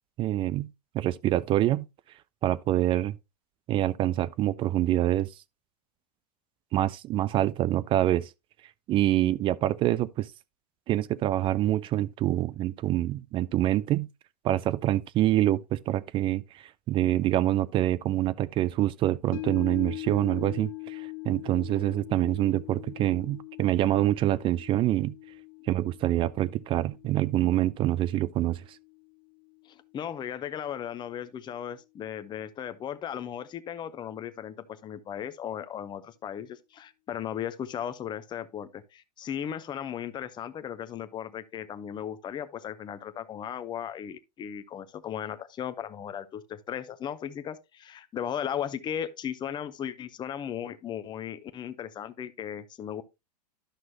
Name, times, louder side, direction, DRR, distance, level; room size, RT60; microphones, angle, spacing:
voice 1, 0.2-0.7 0.9-1.9 2.4-3.1 3.7-5.3 6.7-8.3 8.9-10.3 10.9-14.1 14.4-25.2 25.7-28.6, right 14 dB, 25° right, 0.3 m, -26 dB
sound 1, 19.3-29.7 30.1-30.2, left 26 dB, 60° left, 0.7 m, -43 dB
voice 2, 29.7-53.0, left 9 dB, 20° left, 0.7 m, -36 dB
11.5 x 6.1 x 2.7 m
hypercardioid pair, 100°, 21 cm